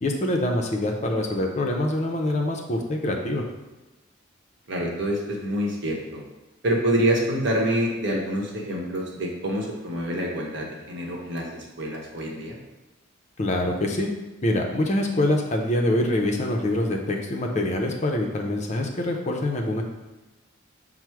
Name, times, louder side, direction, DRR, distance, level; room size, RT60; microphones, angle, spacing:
voice 1, 0.0-3.5 13.4-14.1 14.4-19.8, left 1 dB, 35° left, 2 dB, 0.5 m, -25 dB
voice 2, 4.7-6.2 6.6-12.6, equal, 60° right, -2 dB, 0.9 m, -26 dB
5.9 x 2.0 x 4.5 m, 1.1 s
head